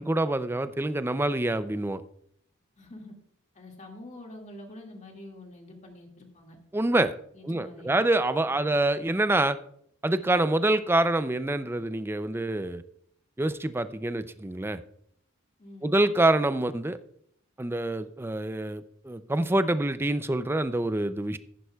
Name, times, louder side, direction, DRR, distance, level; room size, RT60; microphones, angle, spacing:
voice 1, 0.0-2.0 6.7-7.1 7.4-9.6 10.0-12.8 13.4-14.8 15.8-17.0 17.6-21.4, right 2 dB, 10° right, 12 dB, 0.4 m, -26 dB
voice 2, 2.8-3.1 3.5-6.6 7.3-8.0 8.4-8.7 15.6-15.9, left 1 dB, 35° left, 1 dB, 2.1 m, -46 dB
14.5 x 11.0 x 2.3 m, 0.70 s
head